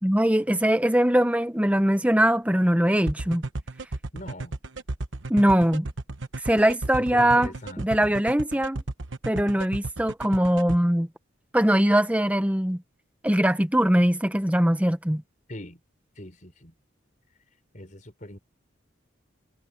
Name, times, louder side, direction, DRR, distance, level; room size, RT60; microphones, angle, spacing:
voice 1, 0.0-3.4 5.3-5.9 6.4-7.5 7.8-8.8 9.2-11.1 11.5-12.8 13.2-15.2, right 1 dB, 5° right, 0.9 m, -21 dB
sound 1, 3.1-10.8, right 2 dB, 75° right, 1.1 m, -33 dB
voice 2, 4.1-4.5 7.0-8.2 15.5-15.8 16.2-16.7 17.7-18.4, left 1 dB, 40° left, 5.5 m, -41 dB
head